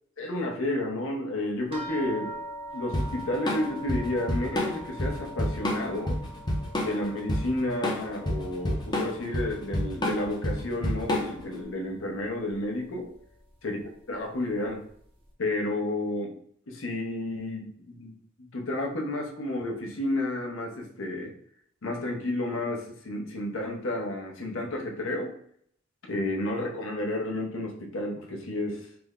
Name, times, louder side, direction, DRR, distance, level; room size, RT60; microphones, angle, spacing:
voice 1, 0.2-2.4 2.7-6.2 6.8-13.1 13.6-13.8 14.1-14.9 15.4-16.4 16.7-21.3 21.8-25.3 26.1-28.9, left 1 dB, 70° left, 1 dB, 0.7 m, -31 dB
sound 1, 1.7-10.5 10.9-11.7 12.5-12.6 13.0-13.2, right 1 dB, 25° right, 0.6 m, -43 dB
Drum kit / Drum, 2.9-11.5, left 1 dB, 20° left, 0.6 m, -29 dB
3.4 x 2.1 x 3.5 m, 0.64 s
head